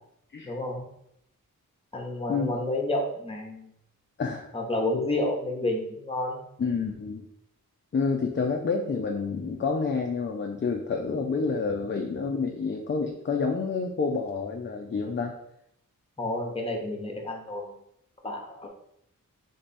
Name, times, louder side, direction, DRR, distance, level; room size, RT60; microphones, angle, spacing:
voice 1, 0.4-0.8 1.9-3.7 4.5-6.4 16.2-17.8 18.2-18.7, left 1 dB, 15° left, 1 dB, 0.9 m, -30 dB
voice 2, 6.6-7.2 7.9-15.3, left 4 dB, 35° left, 1 dB, 0.5 m, -28 dB
3.4 x 3.4 x 4.1 m, 0.75 s
wide cardioid pair, 105°, 33 cm